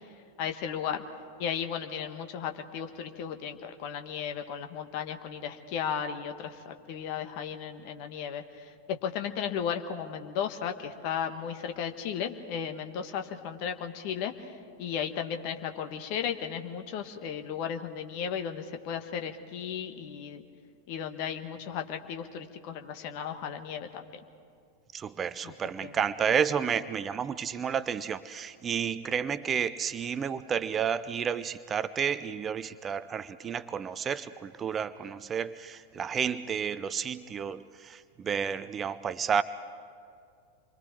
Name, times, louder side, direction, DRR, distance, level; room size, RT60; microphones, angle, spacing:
voice 1, 0.4-1.0 1.4-14.5 14.8-20.4 20.9-24.2 25.4-25.5 25.8-26.0, left 8 dB, 45° left, 7 dB, 1.5 m, -35 dB
voice 2, 24.9-39.4, right 7 dB, 25° right, 15 dB, 0.6 m, -31 dB
28.0 x 23.5 x 4.7 m, 2.3 s
figure-of-eight pair, 90°, 0 cm